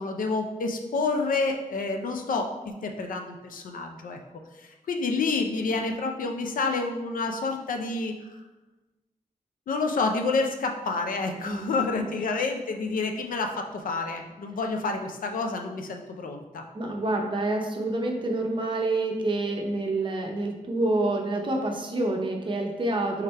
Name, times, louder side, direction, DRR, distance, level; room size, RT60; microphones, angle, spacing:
voice 1, 0.0-4.2 4.6-8.1 9.7-16.6, left 3 dB, 90° left, 4 dB, 0.4 m, -29 dB
voice 2, 16.7-23.2, right 2 dB, 35° right, 1 dB, 0.6 m, -27 dB
3.5 x 3.2 x 4.4 m, 1.1 s
wide cardioid pair, 160°, 14 cm